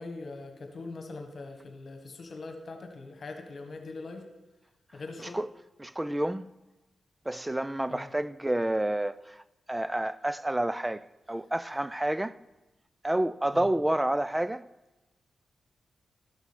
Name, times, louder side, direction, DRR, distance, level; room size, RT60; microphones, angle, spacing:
voice 1, 0.0-4.3 4.9-5.4 7.9-8.1 13.5-13.7, left 3 dB, 55° left, 1.5 m, -42 dB
voice 2, 5.8-6.5 7.3-12.4 13.0-14.7, right 1 dB, 15° right, 0.4 m, -29 dB
12.5 x 6.4 x 5.2 m
cardioid pair, 55°, 0 cm